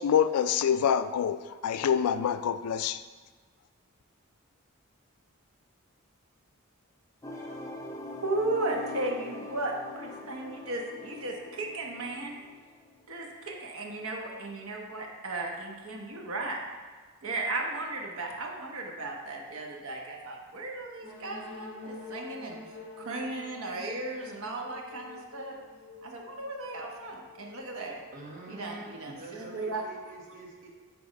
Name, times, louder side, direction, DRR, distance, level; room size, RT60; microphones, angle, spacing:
voice 1, 0.0-3.0, left 8 dB, 85° left, 13 dB, 0.3 m, -26 dB
sound 1, 7.2-13.1, left 2 dB, 15° left, 0.7 m, -43 dB
voice 2, 8.2-12.3 13.1-16.6 17.2-22.6 23.0-25.5 26.0-28.0 28.5-29.8, right 2 dB, 75° right, 0 dB, 1.1 m, -35 dB
sound 2, 21.0-28.7, left 3 dB, 55° left, 1.3 m, -47 dB
voice 3, 28.1-30.7, right 3 dB, 40° right, -3 dB, 1.3 m, -45 dB
8.4 x 3.5 x 5.2 m, 1.4 s
head